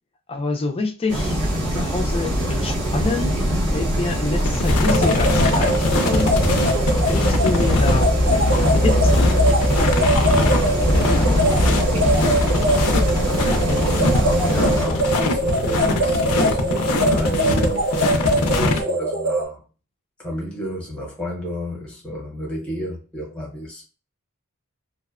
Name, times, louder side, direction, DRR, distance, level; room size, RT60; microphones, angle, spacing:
voice 1, 0.3-1.4 1.7-3.4 3.7-6.4 7.0-9.6, left 3 dB, 25° left, 0.3 m, -27 dB
sound 1, 1.1-14.9, equal, 85° right, 1.1 m, -21 dB
sound 2, 4.4-18.8, left 2 dB, 90° left, 0.5 m, -23 dB
sound 3, 4.8-19.4, right 1 dB, 60° right, 0.8 m, -23 dB
voice 2, 13.1-19.6 20.2-23.9, equal, 5° left, 0.8 m, -31 dB
2.5 x 2.1 x 2.4 m
head